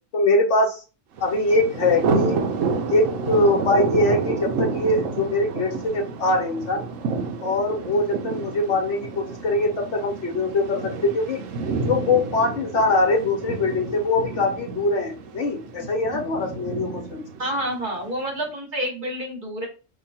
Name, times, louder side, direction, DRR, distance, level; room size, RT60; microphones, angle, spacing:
voice 1, 0.1-0.8 1.2-2.4 2.9-6.8 7.4-11.4 11.9-17.2, left 2 dB, 65° left, 2 dB, 1.1 m, -22 dB
Thunder, 1.2-18.2, right 4 dB, 80° right, 1.0 m, -30 dB
voice 2, 17.4-19.7, right 1 dB, 40° right, -2 dB, 1.4 m, -28 dB
2.9 x 2.3 x 4.1 m, 0.34 s
omnidirectional pair, 1.3 m